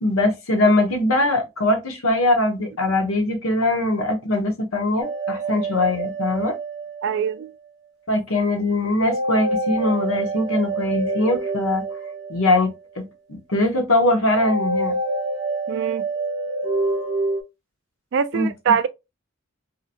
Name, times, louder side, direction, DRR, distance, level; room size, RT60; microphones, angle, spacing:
voice 1, 0.0-6.5 8.1-11.9 12.3-15.0 18.3-18.8, left 2 dB, 85° left, 0.9 m, -21 dB
sound 1, 5.0-7.7 9.1-13.0 14.3-17.4, right 2 dB, 15° right, 0.9 m, -27 dB
voice 2, 7.0-7.5 15.7-16.1 18.1-18.9, right 7 dB, 60° right, 0.3 m, -23 dB
2.8 x 2.6 x 2.7 m
head